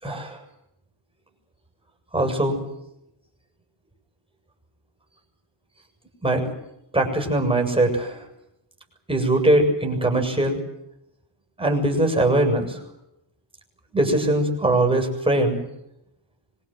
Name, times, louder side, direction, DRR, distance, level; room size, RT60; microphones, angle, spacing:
voice 1, 0.0-0.4 2.1-2.6 6.2-6.5 6.9-8.2 9.1-10.6 11.6-12.8 13.9-15.6, right 1 dB, 10° right, 2 dB, 7.3 m, -21 dB
25.5 x 24.5 x 7.9 m, 0.84 s
wide cardioid pair, 160°, 43 cm